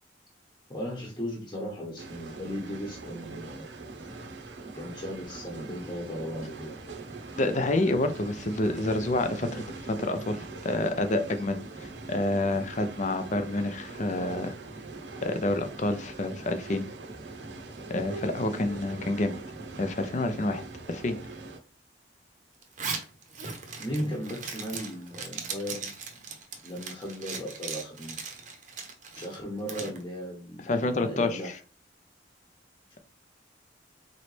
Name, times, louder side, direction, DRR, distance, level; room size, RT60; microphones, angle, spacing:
voice 1, 0.7-3.6 4.7-6.8 23.8-25.9 26.6-28.1 29.1-31.5, equal, 20° left, -3 dB, 1.0 m, -36 dB
sound 1, 2.0-21.6, right 3 dB, 75° right, 0.7 m, -42 dB
voice 2, 7.4-14.5 15.2-16.8 17.9-19.3 19.8-20.6 20.9-21.2 30.7-31.4, left 2 dB, 40° left, 8 dB, 0.5 m, -28 dB
Zipper (clothing), 22.6-30.0, right 5 dB, 45° right, 0.7 m, -38 dB
4.0 x 3.1 x 3.2 m, 0.37 s
head